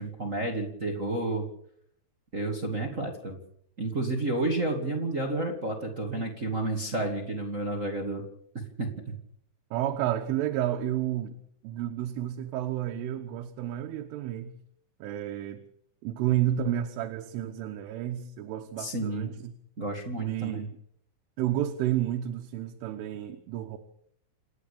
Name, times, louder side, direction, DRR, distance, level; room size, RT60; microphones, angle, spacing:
voice 1, 0.0-1.4 2.3-3.4 3.8-8.2 8.5-9.1 18.8-19.3 19.8-20.7, right 2 dB, 45° right, 3 dB, 1.0 m, -31 dB
voice 2, 9.7-11.3 11.6-14.5 15.0-15.6 16.0-19.5 20.2-20.7 21.4-23.8, right 12 dB, 80° right, 5 dB, 3.7 m, -31 dB
28.5 x 11.0 x 8.5 m, 0.70 s
omnidirectional pair, 5.6 m